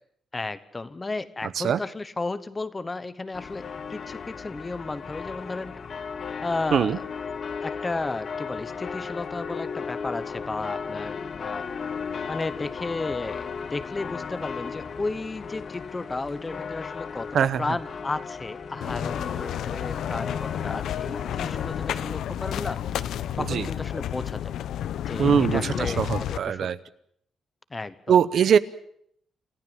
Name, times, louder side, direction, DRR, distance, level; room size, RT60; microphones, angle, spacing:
voice 1, 0.3-5.8 6.4-7.1 7.6-11.7 12.3-22.8 23.4-24.6 25.1-26.7 27.7-28.2, left 3 dB, 20° left, 14 dB, 0.9 m, -33 dB
sound 1, 3.3-22.1, left 6 dB, 40° left, 1.0 m, -35 dB
sound 2, 18.8-26.4, left 10 dB, 80° left, 0.8 m, -31 dB
voice 2, 25.2-26.8 28.1-28.6, right 8 dB, 55° right, 15 dB, 0.8 m, -22 dB
28.0 x 15.0 x 7.4 m, 0.69 s
wide cardioid pair, 160°, 0 cm